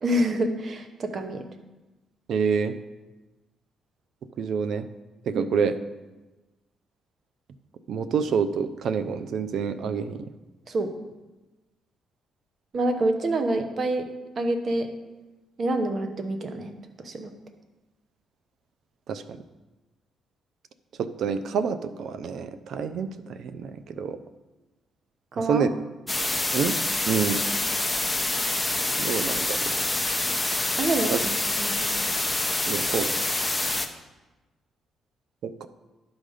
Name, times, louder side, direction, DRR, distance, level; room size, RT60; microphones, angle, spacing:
voice 1, 0.0-1.4 5.3-5.5 10.7-10.9 12.7-14.1 14.4-14.9 15.6-16.7 17.0-17.3 25.3-25.7 30.8-31.3 31.6-32.0, right 1 dB, 45° right, 7 dB, 0.9 m, -27 dB
voice 2, 2.3-2.7 4.4-4.9 5.3-5.7 7.9-10.3 19.1-19.4 21.0-24.2 25.5-25.7 26.5-26.8 27.1-27.4 29.0-29.7 31.1-31.2 32.7-33.2 35.4-35.7, right 6 dB, 70° right, 12 dB, 0.5 m, -27 dB
sound 1, 26.1-33.9, left 2 dB, 10° left, 0.7 m, -26 dB
11.0 x 4.0 x 5.0 m, 1.1 s
cardioid pair, 90°, 0 cm